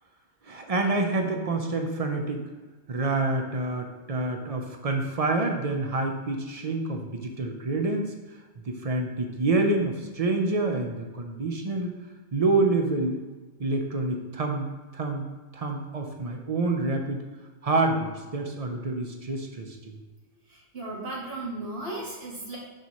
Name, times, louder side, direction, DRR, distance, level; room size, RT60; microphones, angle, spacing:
voice 1, 0.5-2.4 2.9-8.1 8.6-11.9 12.3-13.2 13.6-15.3 15.5-17.2 17.6-19.8, right 2 dB, 35° right, 3 dB, 0.7 m, -27 dB
voice 2, 20.5-22.6, right 2 dB, 55° right, -5 dB, 2.0 m, -35 dB
6.5 x 5.4 x 3.1 m, 1.3 s
omnidirectional pair, 1.2 m